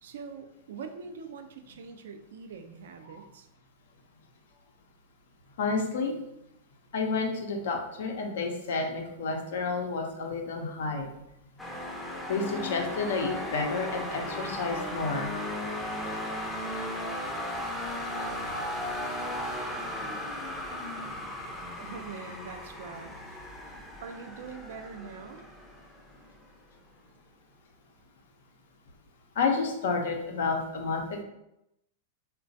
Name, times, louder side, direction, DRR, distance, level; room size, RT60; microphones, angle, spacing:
voice 1, 0.0-3.5 21.8-23.1 24.0-25.4, right 5 dB, 75° right, 7 dB, 0.3 m, -43 dB
voice 2, 5.6-6.1 6.9-11.1 12.3-15.3 29.4-31.2, left 4 dB, 70° left, 2 dB, 0.5 m, -30 dB
sound 1, 11.6-26.4, left 1 dB, 5° left, 0.5 m, -36 dB
3.0 x 2.2 x 2.6 m, 0.85 s
hypercardioid pair, 105°, 0 cm